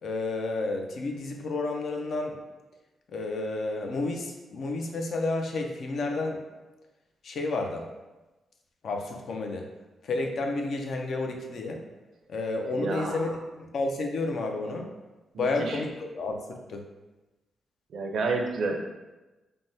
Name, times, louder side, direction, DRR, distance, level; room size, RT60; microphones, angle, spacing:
voice 1, 0.0-2.4 3.1-6.4 7.2-7.9 8.8-9.7 10.0-11.8 12.3-14.9 15.4-16.8, left 2 dB, 60° left, 3 dB, 0.4 m, -31 dB
voice 2, 12.7-13.2 15.3-15.8 17.9-18.9, right 3 dB, 70° right, 2 dB, 0.4 m, -30 dB
3.3 x 2.1 x 2.6 m, 1.1 s
cardioid pair, 120°, 0 cm